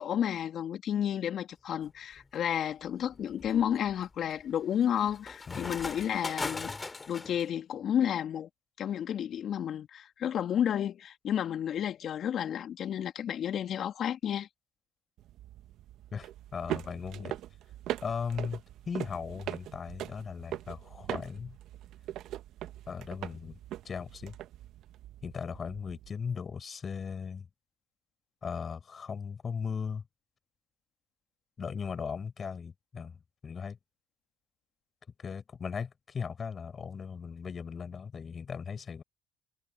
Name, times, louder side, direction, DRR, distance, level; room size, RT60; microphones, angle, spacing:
voice 1, 0.0-6.7 7.1-8.5 8.8-14.5, left 9 dB, 55° left, 2.6 m, -31 dB
sound 1, 1.9-2.2 2.8-7.4, left 3 dB, 25° left, 2.5 m, -40 dB
sound 2, 15.2-26.1, right 13 dB, 65° right, 1.4 m, -41 dB
voice 2, 16.1-17.4 18.0-21.6 22.9-23.6 23.8-24.4 25.2-27.5 28.4-30.0 31.6-33.8 35.2-39.0, left 6 dB, 40° left, 6.2 m, -38 dB
hypercardioid pair, 65°, 0 cm